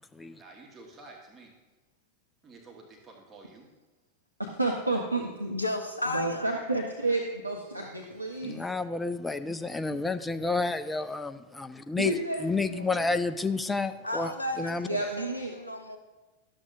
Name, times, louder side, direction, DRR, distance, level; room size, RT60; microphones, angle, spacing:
voice 1, 0.2-1.5 2.4-3.7, right 3 dB, 20° right, 0 dB, 1.3 m, -50 dB
voice 2, 4.4-5.5 6.1-8.7 9.8-10.0 12.0-13.0 14.9-15.5, right 2 dB, 85° right, 1 dB, 0.6 m, -31 dB
voice 3, 5.5-6.5 14.0-16.0, left 1 dB, 80° left, 5 dB, 0.5 m, -33 dB
voice 4, 8.4-12.2 12.4-14.3 14.6-14.9, left 3 dB, 10° left, 11 dB, 0.4 m, -30 dB
12.0 x 7.3 x 2.5 m, 1.2 s
figure-of-eight pair, 90°, 0 cm